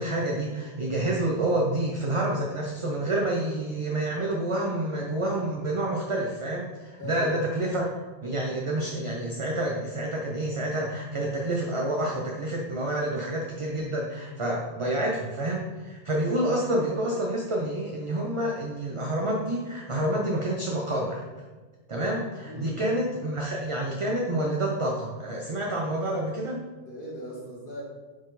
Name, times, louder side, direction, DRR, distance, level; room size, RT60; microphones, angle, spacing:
voice 1, 0.0-7.9 8.2-21.2 21.9-26.6, right 1 dB, 35° right, -1 dB, 0.7 m, -28 dB
voice 2, 7.0-7.4 22.4-22.8 26.8-27.8, equal, 55° left, -4 dB, 2.0 m, -39 dB
9.5 x 4.3 x 4.1 m, 1.3 s
omnidirectional pair, 1.1 m